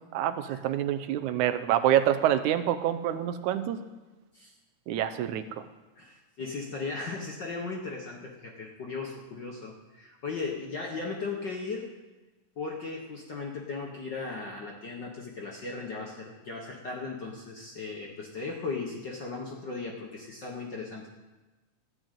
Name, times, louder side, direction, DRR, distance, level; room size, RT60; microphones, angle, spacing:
voice 1, 0.1-3.8 4.9-5.5, right 11 dB, 80° right, 10 dB, 2.1 m, -26 dB
voice 2, 6.0-11.9 12.6-21.1, left 4 dB, 50° left, 0 dB, 1.3 m, -37 dB
13.5 x 6.4 x 9.1 m, 1.2 s
omnidirectional pair, 3.5 m